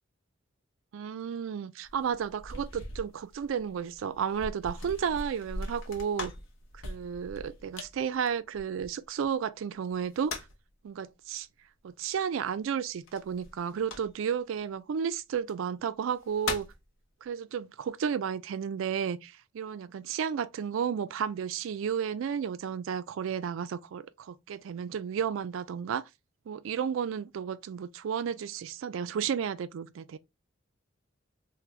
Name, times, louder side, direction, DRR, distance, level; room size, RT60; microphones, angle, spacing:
voice 1, 0.9-6.3 6.8-10.5 10.8-11.5 11.8-16.7 17.2-26.1 26.5-30.2, right 7 dB, 80° right, 0.3 m, -32 dB
sound 1, 1.8-9.3 9.9-10.7 13.1-14.4 15.4-15.5 16.0-16.8, left 2 dB, 80° left, 0.8 m, -41 dB
3.4 x 2.1 x 3.0 m
head